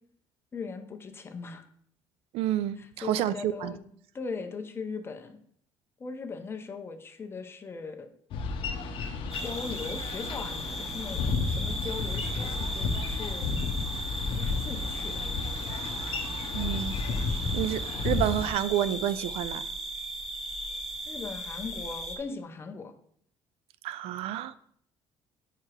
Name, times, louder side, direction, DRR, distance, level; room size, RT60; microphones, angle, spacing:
voice 1, 0.5-1.6 2.8-3.9 4.1-5.4 6.0-8.1 9.4-13.5 14.3-15.2 21.1-22.9, left 4 dB, 25° left, 7 dB, 0.6 m, -39 dB
voice 2, 2.3-3.7 16.5-16.9 17.5-19.6 23.8-24.5, right 12 dB, 85° right, 16 dB, 0.4 m, -29 dB
Boat Water vehicle, 8.3-18.5, left 4 dB, 60° left, 0.7 m, -32 dB
sound 1, 9.3-22.2, equal, ahead, 1.0 m, -37 dB
4.9 x 4.5 x 4.8 m, 0.64 s
cardioid pair, 150°, 10 cm